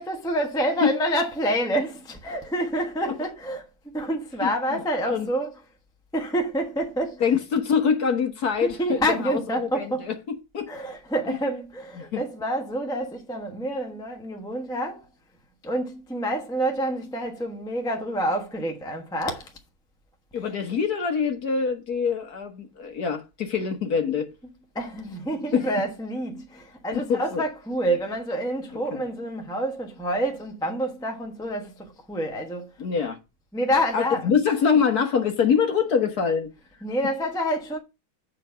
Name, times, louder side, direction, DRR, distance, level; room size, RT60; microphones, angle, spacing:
voice 1, 0.0-5.5 6.1-7.3 8.6-10.1 10.7-15.1 15.6-19.5 24.7-32.7 33.5-34.3 36.8-37.8, right 1 dB, 5° left, 0.7 m, -28 dB
voice 2, 4.4-4.8 5.1-5.3 7.2-10.7 11.3-11.4 12.0-12.2 20.3-24.3 25.5-25.7 26.9-27.4 28.9-29.0 32.8-33.2 33.9-36.5, left 6 dB, 55° left, 1.6 m, -24 dB
7.7 x 4.8 x 5.6 m
omnidirectional pair, 2.2 m